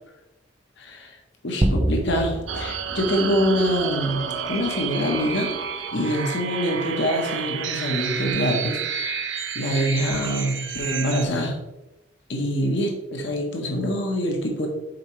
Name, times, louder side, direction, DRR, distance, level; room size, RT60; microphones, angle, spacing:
voice 1, 0.8-1.2 1.4-5.5 5.9-11.6 12.3-14.7, equal, 70° left, 2 dB, 1.2 m, -25 dB
sound 1, 1.6-4.2, right 1 dB, 20° right, 0.4 m, -27 dB
sound 2, 2.5-11.2, right 7 dB, 80° right, 0.6 m, -30 dB
Marimba xylophone, 3.7-6.4, left 2 dB, 15° left, 0.7 m, -42 dB
6.5 x 4.6 x 3.2 m, 0.95 s
head